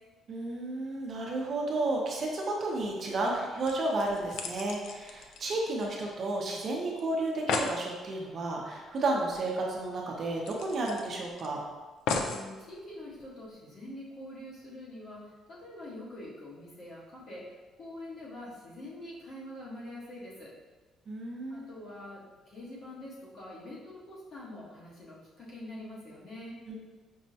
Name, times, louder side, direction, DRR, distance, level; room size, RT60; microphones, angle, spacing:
voice 1, 0.3-11.6 21.1-21.7 26.7-26.8, right 2 dB, 40° right, -1 dB, 0.6 m, -32 dB
sound 1, 3.7-6.3 6.6-6.7 7.0-7.1 7.3-7.8 9.3-9.4 9.7-9.8 10.5-11.5 12.1-12.5 13.2-13.3, left 4 dB, 75° left, 0.3 m, -35 dB
voice 2, 12.1-17.5 17.8-20.5 21.5-26.6, left 1 dB, 45° left, -6 dB, 1.1 m, -45 dB
5.3 x 2.1 x 2.7 m, 1.3 s
cardioid pair, 150°, 0 cm